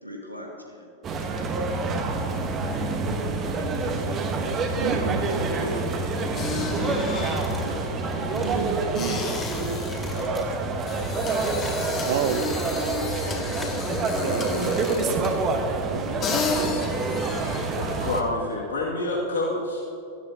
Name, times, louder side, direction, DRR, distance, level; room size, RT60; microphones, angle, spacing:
voice 1, 0.0-0.9 3.4-3.9 4.8-7.8 8.3-8.9, equal, 90° right, 0 dB, 2.1 m, -38 dB
sound 1, 1.0-18.2, right 3 dB, 30° right, 1.4 m, -27 dB
voice 2, 4.7-5.3 8.4-9.3 12.0-15.4 15.9-17.7, right 8 dB, 55° right, 9 dB, 0.9 m, -32 dB
sound 2, 6.3-15.5 15.9-16.0 16.2-17.8, left 4 dB, 30° left, 1.7 m, -33 dB
sound 3, 7.1-7.7 8.0-8.7 9.1-9.6 9.9-10.5 10.9-11.8 12.2-12.9 13.3-13.7, left 1 dB, 5° left, 2.7 m, -41 dB
voice 3, 17.7-19.8, left 2 dB, 65° left, -6 dB, 2.6 m, -28 dB
17.0 x 14.5 x 3.0 m, 3.0 s
figure-of-eight pair, 90°, 0 cm